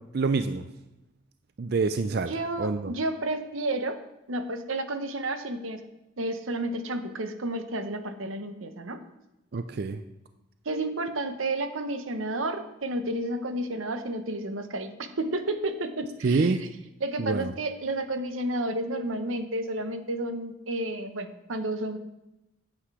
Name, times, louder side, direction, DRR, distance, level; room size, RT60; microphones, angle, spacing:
voice 1, 0.1-0.6 1.6-2.9 9.5-10.0 16.2-16.6 17.2-17.5, right 4 dB, 50° right, 9 dB, 0.4 m, -26 dB
voice 2, 2.3-4.0 4.3-5.8 6.2-9.0 10.6-16.7 17.0-22.0, right 1 dB, 85° right, 8 dB, 1.0 m, -31 dB
8.8 x 7.9 x 4.8 m, 0.95 s
head